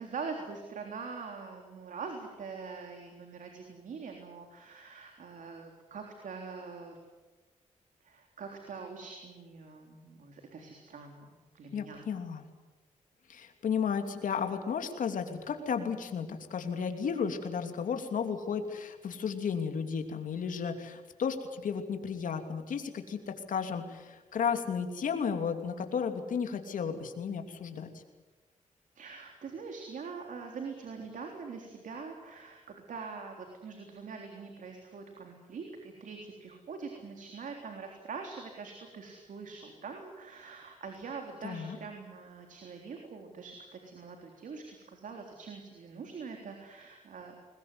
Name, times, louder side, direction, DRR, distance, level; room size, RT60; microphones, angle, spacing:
voice 1, 0.0-7.0 8.0-11.3 11.5-12.1 29.0-47.3, right 5 dB, 75° right, 3 dB, 3.6 m, -43 dB
voice 2, 11.7-12.5 13.3-28.0 41.4-41.8, left 6 dB, 80° left, 6 dB, 3.0 m, -33 dB
22.0 x 21.0 x 9.7 m, 1.2 s
cardioid pair, 70°, 13 cm